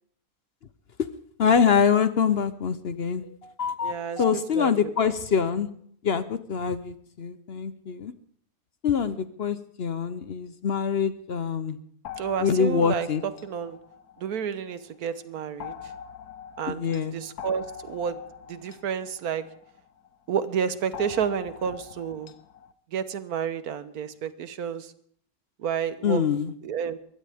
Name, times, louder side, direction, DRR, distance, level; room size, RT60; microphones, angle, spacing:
voice 1, 1.4-5.7 6.0-8.1 8.8-11.8 12.4-13.2 16.7-17.2 26.0-26.5, left 6 dB, 50° left, 13 dB, 0.9 m, -25 dB
voice 2, 3.8-4.2 4.6-4.9 12.2-13.1 13.4-13.8 14.2-15.7 16.6-18.2 18.5-19.4 20.3-22.3 22.9-24.9 25.6-26.2 26.6-27.0, right 7 dB, 85° right, 13 dB, 1.5 m, -30 dB
sound 1, 12.0-14.8 15.6-20.1 20.9-22.7, left 8 dB, 90° left, 1.3 m, -43 dB
23.0 x 16.0 x 3.5 m, 0.63 s
omnidirectional pair, 1.5 m